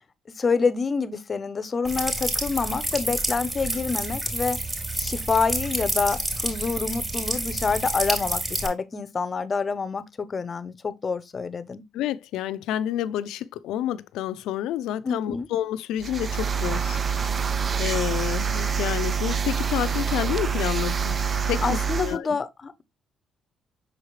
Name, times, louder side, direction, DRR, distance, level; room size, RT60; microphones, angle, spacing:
voice 1, 0.3-4.6 4.9-11.8 15.0-15.5 21.6-22.8, left 4 dB, 35° left, 0.7 m, -27 dB
sound 1, 1.8-8.7, right 1 dB, 20° right, 3.3 m, -29 dB
voice 2, 11.9-17.0 17.8-21.1 21.5-22.4, left 12 dB, 85° left, 0.4 m, -29 dB
sound 2, 16.0-22.2, right 6 dB, 40° right, 0.5 m, -26 dB
6.4 x 4.9 x 3.1 m
cardioid pair, 90°, 0 cm